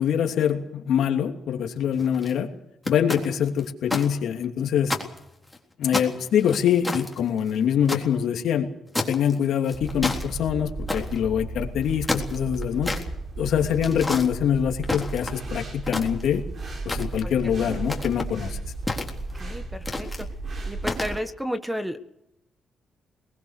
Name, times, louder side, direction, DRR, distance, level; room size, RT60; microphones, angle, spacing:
voice 1, 0.0-2.5 2.9-4.9 5.8-8.7 9.1-12.9 13.4-16.4 16.8-18.6, left 8 dB, 75° left, 4 dB, 2.9 m, -24 dB
sound 1, 1.9-2.3 2.8-4.1 4.4-4.5 4.8-5.6 5.9-8.0 8.9-9.3 9.7-10.3 10.9-11.2 11.8-13.0 13.8-14.3 14.8-15.5 15.8-16.4 16.9-17.3 17.8-18.3 18.9-19.4 19.8-20.2 20.8-21.2, left 2 dB, 10° left, 3.7 m, -30 dB
sound 2, 9.7-21.2, right 2 dB, 45° right, 5.7 m, -34 dB
voice 2, 17.2-17.7 19.4-20.3 20.7-22.0, equal, 5° right, 10 dB, 1.5 m, -33 dB
22.5 x 20.5 x 6.7 m, 0.85 s
cardioid pair, 105°, 0 cm